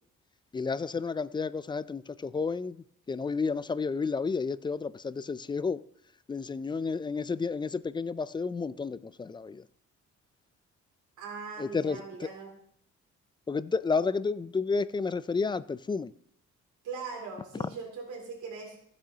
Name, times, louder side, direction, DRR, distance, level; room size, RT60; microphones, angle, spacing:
voice 1, 0.5-2.8 3.1-5.8 6.3-9.6 11.6-12.0 13.5-16.1, left 4 dB, 15° left, 0.3 m, -31 dB
voice 2, 11.2-12.5 16.8-18.8, right 5 dB, 80° right, 2.9 m, -40 dB
15.5 x 7.4 x 2.8 m
cardioid pair, 90°, 30 cm